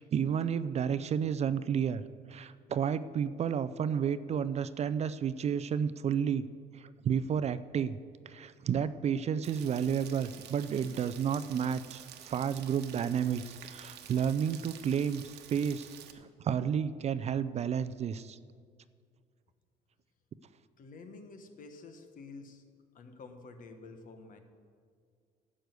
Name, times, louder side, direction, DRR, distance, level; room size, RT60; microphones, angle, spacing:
voice 1, 0.0-2.0 2.3-6.5 6.7-8.0 8.3-18.4, right 8 dB, 40° right, 14 dB, 0.4 m, -31 dB
Rain, 9.4-16.1, right 10 dB, 85° right, 1.1 m, -50 dB
voice 2, 20.8-22.6 22.9-24.4, left 3 dB, 55° left, 7 dB, 1.4 m, -49 dB
11.5 x 6.3 x 8.1 m, 2.1 s
cardioid pair, 110°, 17 cm